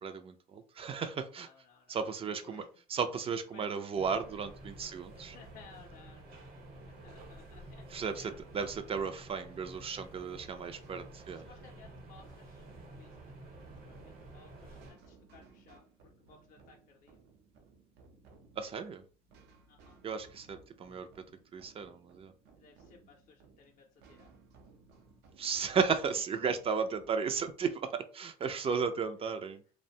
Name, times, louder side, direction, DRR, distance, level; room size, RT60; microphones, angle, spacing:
voice 1, 0.0-1.5 1.9-2.6 2.9-5.4 7.9-11.5 18.6-19.0 20.0-21.3 21.5-22.3 25.4-29.6, right 6 dB, 35° right, 9 dB, 0.3 m, -34 dB
voice 2, 1.4-2.7 3.5-3.9 5.1-8.4 10.1-10.6 11.5-17.2 19.7-20.0 22.6-24.3, left 5 dB, 50° left, 1 dB, 0.5 m, -59 dB
sound 1, 3.9-14.9, right 2 dB, 65° right, 1.0 m, -51 dB
sound 2, 10.8-27.5, right 4 dB, 85° right, 0.6 m, -61 dB
2.4 x 2.1 x 2.7 m, 0.39 s
cardioid pair, 110°, 17 cm